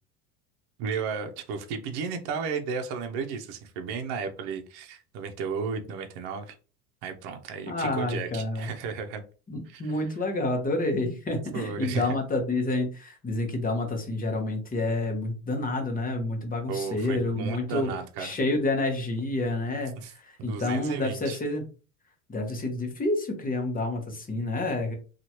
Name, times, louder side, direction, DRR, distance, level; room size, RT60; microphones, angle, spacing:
voice 1, 0.8-6.6 7.0-9.2 9.7-10.0 11.5-12.2 16.7-18.3 20.0-20.1 20.4-21.4, right 5 dB, 55° right, 0.7 m, -34 dB
voice 2, 7.7-8.7 9.5-17.9 18.2-21.6 22.3-24.9, left 2 dB, 20° left, 0.9 m, -29 dB
2.9 x 2.5 x 2.8 m
supercardioid pair, 100°, 45 cm